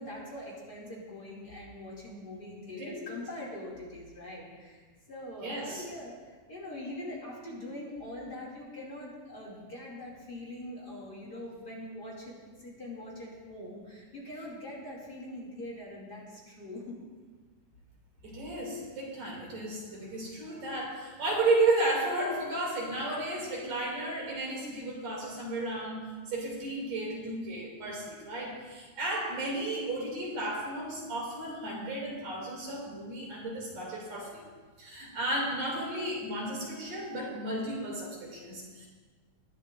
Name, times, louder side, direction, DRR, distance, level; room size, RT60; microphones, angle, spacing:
voice 1, 0.0-6.1 6.5-16.8, left 1 dB, 35° left, -5 dB, 2.9 m, -43 dB
voice 2, 5.4-5.9 18.2-34.4 34.8-38.9, right 2 dB, 60° right, -3 dB, 3.9 m, -33 dB
20.5 x 12.0 x 2.6 m, 1.4 s
omnidirectional pair, 3.4 m